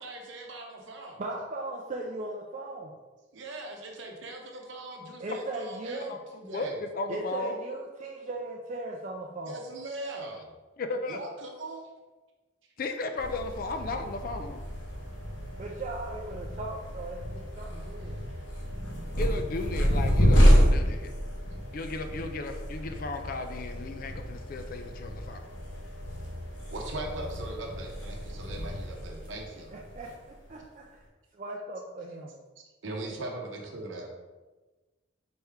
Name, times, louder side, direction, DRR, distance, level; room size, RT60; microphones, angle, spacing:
voice 1, 0.0-1.2 3.3-6.8 9.4-10.5 11.1-11.9 26.7-29.8 32.8-34.1, right 2 dB, 65° right, 1 dB, 0.8 m, -40 dB
voice 2, 1.2-2.9 5.2-6.2 7.1-9.6 15.6-18.2 29.7-30.8 31.3-32.3, right 2 dB, 35° right, -1 dB, 0.4 m, -38 dB
voice 3, 6.5-7.6 10.8-11.2 12.8-14.6 19.2-21.1 21.7-25.4, left 3 dB, 45° left, 7 dB, 0.3 m, -35 dB
sound 1, 13.2-30.6, equal, 65° left, 1.0 m, -29 dB
4.2 x 3.5 x 3.4 m, 1.2 s
head